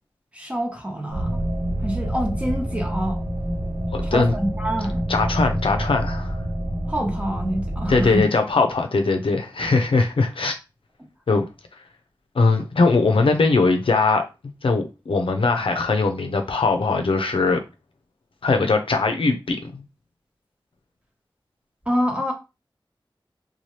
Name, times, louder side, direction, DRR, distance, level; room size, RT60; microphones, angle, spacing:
voice 1, 0.3-1.4 1.8-3.2 4.0-5.0 6.9-8.3 21.9-22.3, equal, 15° right, 1.0 m, -26 dB
sound 1, 1.1-8.2, right 1 dB, 70° right, 0.8 m, -27 dB
voice 2, 3.9-4.3 5.1-6.4 7.9-10.5 11.3-11.5 12.3-14.2 14.6-17.6 18.4-19.8, left 3 dB, 85° left, 0.5 m, -20 dB
2.7 x 2.3 x 3.1 m
cardioid pair, 40°, 9 cm